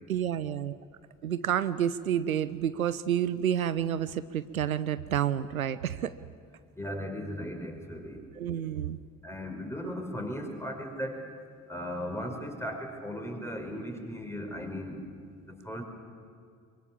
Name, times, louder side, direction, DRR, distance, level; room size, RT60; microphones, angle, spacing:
voice 1, 0.1-0.8 1.2-6.2 8.4-9.0, right 10 dB, 85° right, 15 dB, 0.6 m, -29 dB
voice 2, 6.8-8.2 9.2-11.2 11.7-15.0 15.5-15.8, equal, 5° left, 2 dB, 5.3 m, -37 dB
24.0 x 23.5 x 7.2 m, 2.3 s
figure-of-eight pair, 50°, 41 cm